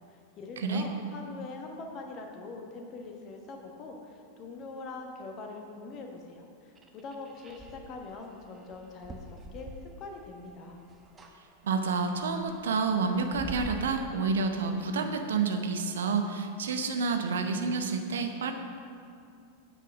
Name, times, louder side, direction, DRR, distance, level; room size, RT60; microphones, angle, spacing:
voice 1, 0.0-10.8, left 3 dB, 35° left, 2 dB, 1.2 m, -43 dB
sound 1, 6.8-10.4 10.7-11.4 11.7-13.8, equal, 20° right, 0.8 m, -46 dB
voice 2, 11.6-18.5, right 4 dB, 65° right, 5 dB, 0.7 m, -29 dB
8.2 x 5.8 x 6.1 m, 2.4 s
figure-of-eight pair, 90°, 0 cm